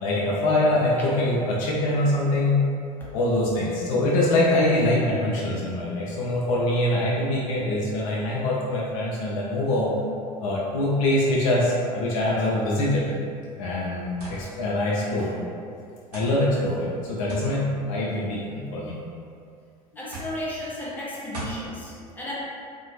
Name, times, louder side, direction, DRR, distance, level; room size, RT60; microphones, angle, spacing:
voice 1, 0.0-2.6 3.1-9.9 10.4-13.1 13.5-15.3 16.1-18.9 20.0-20.1 22.0-22.1, left 1 dB, 55° left, -4 dB, 0.5 m, -24 dB
sound 1, 14.2-14.4 15.3-15.4 16.1-16.4 17.3-17.5 18.5-19.0 20.1-20.4 21.3-21.6, right 2 dB, 70° right, 0.7 m, -37 dB
voice 2, 20.0-22.3, left 1 dB, 10° left, -7 dB, 0.7 m, -34 dB
2.5 x 2.0 x 2.9 m, 2.3 s
figure-of-eight pair, 75°, 21 cm